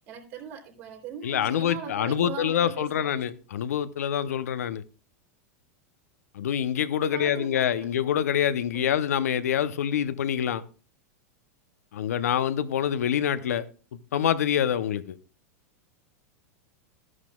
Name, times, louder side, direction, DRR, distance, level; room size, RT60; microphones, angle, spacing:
voice 1, 0.0-3.2 7.0-7.9 8.7-8.9, right 7 dB, 65° right, 3.1 m, -40 dB
voice 2, 1.2-4.8 6.3-10.6 11.9-13.7 13.9-15.2, left 9 dB, 85° left, 0.7 m, -26 dB
13.5 x 11.0 x 2.3 m
hypercardioid pair, 110°, 8 cm